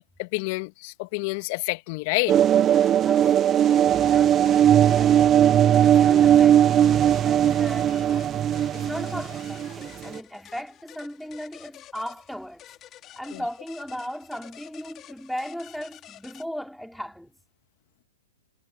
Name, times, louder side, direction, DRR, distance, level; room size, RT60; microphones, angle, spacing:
voice 1, 0.2-2.4 13.3-13.4, left 27 dB, 45° left, 2.3 m, -28 dB
sound 1, 2.3-10.2, right 10 dB, 25° right, 0.6 m, -19 dB
sound 2, 2.7-16.4, left 12 dB, 25° left, 5.2 m, -49 dB
voice 2, 3.0-12.6 13.2-17.3, equal, ahead, 4.0 m, -37 dB
hypercardioid pair, 120°, 0 cm